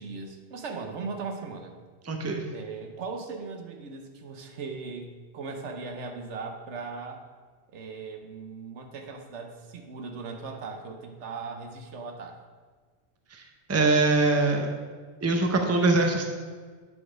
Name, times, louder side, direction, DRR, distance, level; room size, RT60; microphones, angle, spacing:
voice 1, 0.0-1.8 2.5-7.2 7.7-12.4, right 4 dB, 75° right, 5 dB, 1.1 m, -38 dB
voice 2, 2.0-2.5 13.3-14.7 15.2-16.3, right 3 dB, 15° right, 3 dB, 0.6 m, -23 dB
9.2 x 4.1 x 5.0 m, 1.5 s
omnidirectional pair, 1.2 m